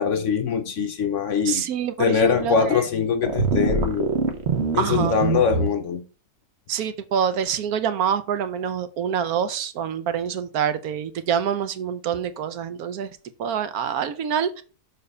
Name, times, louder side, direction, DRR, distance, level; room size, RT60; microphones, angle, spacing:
voice 1, 0.0-1.6 2.0-4.1 4.7-6.0, left 6 dB, 60° left, 0.9 m, -22 dB
voice 2, 1.4-2.9 4.8-5.2 6.7-13.1 13.4-14.6, right 8 dB, 70° right, 1.1 m, -26 dB
sound 1, 3.2-5.7, right 4 dB, 45° right, 1.2 m, -24 dB
6.8 x 4.1 x 5.3 m
omnidirectional pair, 1.7 m